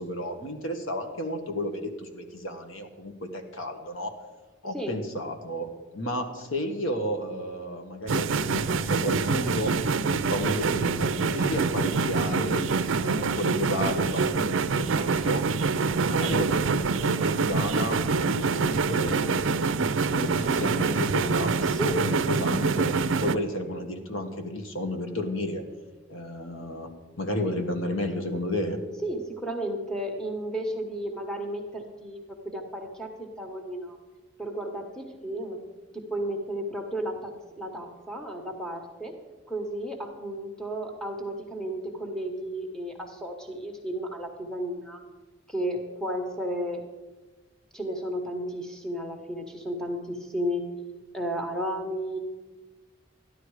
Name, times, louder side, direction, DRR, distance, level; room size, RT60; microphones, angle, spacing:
voice 1, 0.0-4.1 4.6-5.7 5.9-12.6 13.0-15.4 16.1-19.4 20.1-22.9 23.2-25.6 26.1-26.9 27.2-28.8, left 1 dB, 80° left, 5 dB, 1.6 m, -32 dB
sound 1, 8.1-23.3, right 4 dB, 70° right, 0.5 m, -25 dB
voice 2, 21.6-22.0 29.0-32.2 32.4-34.0 34.4-35.6 35.9-39.1 39.5-45.0 45.5-46.9 47.7-50.6 51.1-52.2, right 1 dB, 5° left, 2 dB, 1.3 m, -33 dB
13.5 x 11.0 x 4.9 m, 1.2 s
head